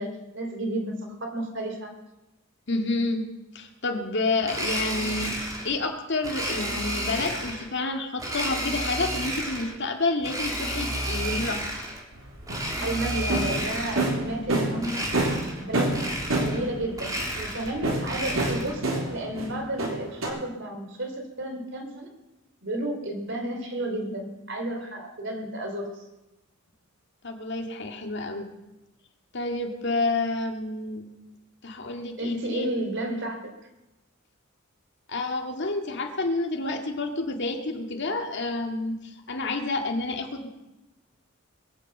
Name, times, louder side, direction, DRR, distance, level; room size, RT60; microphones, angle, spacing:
voice 1, 0.0-1.9 12.8-15.3 15.6-16.0 16.3-22.1 22.6-26.0 32.2-33.4, right 1 dB, 60° right, 3 dB, 3.5 m, -32 dB
voice 2, 2.7-5.3 5.6-11.6 27.2-28.5 29.3-31.1 31.6-32.7 35.1-40.5, left 3 dB, 60° left, 3 dB, 2.1 m, -29 dB
Domestic sounds home sounds, 4.4-5.7 6.2-7.7 8.2-9.8 10.2-12.0 12.4-14.2 14.8-15.6 15.9-16.7 16.9-18.8, equal, 20° right, 2.7 m, -31 dB
sound 1, 12.1-14.9 15.1-16.8 17.6-19.5 19.8-20.3, right 2 dB, 80° right, 3.6 m, -27 dB
22.0 x 7.8 x 7.9 m, 0.99 s
head